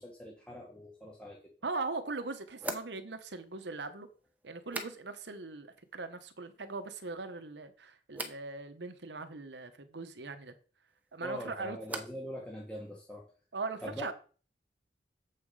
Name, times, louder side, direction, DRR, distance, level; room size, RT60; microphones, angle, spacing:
voice 1, 0.0-1.4 11.2-13.2 13.8-14.1, equal, 5° left, -3 dB, 1.4 m, -42 dB
sound 1, 1.3-1.4 2.6-5.4 5.7-6.3 6.6-7.3 8.1-8.5 10.9-12.3 12.6-13.2, right 1 dB, 10° right, 0.9 m, -45 dB
voice 2, 1.6-4.1 4.4-5.7 5.9-10.5 11.1-12.0 13.5-14.1, right 3 dB, 75° right, 9 dB, 1.1 m, -40 dB
7.6 x 5.8 x 4.8 m, 0.39 s
head